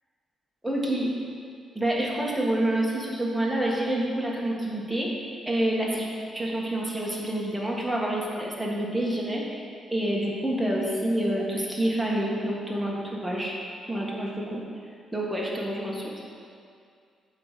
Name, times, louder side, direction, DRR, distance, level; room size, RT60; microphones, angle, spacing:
voice 1, 0.6-1.1 1.7-6.0 6.3-9.6 9.9-13.6 13.9-14.6 15.1-16.2, right 1 dB, ahead, -4 dB, 1.7 m, -28 dB
8.3 x 4.8 x 6.8 m, 2.3 s
cardioid pair, 95°, 0 cm